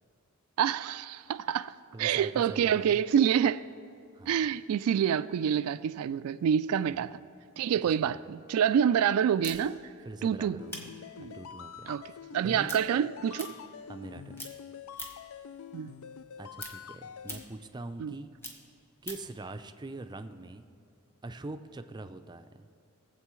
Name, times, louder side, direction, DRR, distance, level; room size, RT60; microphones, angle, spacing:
voice 1, 0.6-1.7 2.0-3.6 4.3-7.2 7.6-9.8 10.2-10.6 11.2-11.3 11.9-12.0 12.3-13.5 15.7-15.9 18.0-18.1, right 8 dB, 90° right, 0.3 m, -27 dB
voice 2, 1.9-3.0 4.1-4.5 6.9-7.1 8.0-8.2 10.0-10.8 11.2-12.7 13.9-14.5 16.4-18.3 19.0-20.7 21.2-22.7, right 2 dB, 20° right, 0.4 m, -43 dB
sound 1, 9.4-14.1 14.3-15.4 15.7-19.4, equal, 10° left, 1.3 m, -45 dB
sound 2, 10.6-17.4, left 7 dB, 75° left, 0.4 m, -46 dB
21.0 x 7.5 x 3.1 m
head